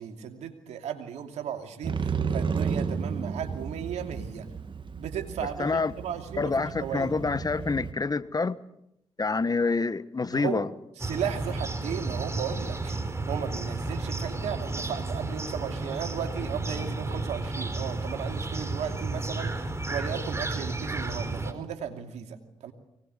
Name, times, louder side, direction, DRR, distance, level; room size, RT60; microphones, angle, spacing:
voice 1, 0.0-4.5 5.0-7.1 10.3-10.7 11.0-13.0 13.3-22.4 22.6-22.7, right 8 dB, 75° right, 5 dB, 2.8 m, -35 dB
Motorcycle, 1.8-7.9, right 5 dB, 45° right, 1.6 m, -33 dB
voice 2, 5.6-5.9 6.4-8.6 9.2-10.7, left 4 dB, 35° left, 15 dB, 1.4 m, -27 dB
sound 1, 11.0-21.5, right 2 dB, 25° right, 4.2 m, -32 dB
24.0 x 19.5 x 8.2 m, 0.79 s
hypercardioid pair, 45°, 12 cm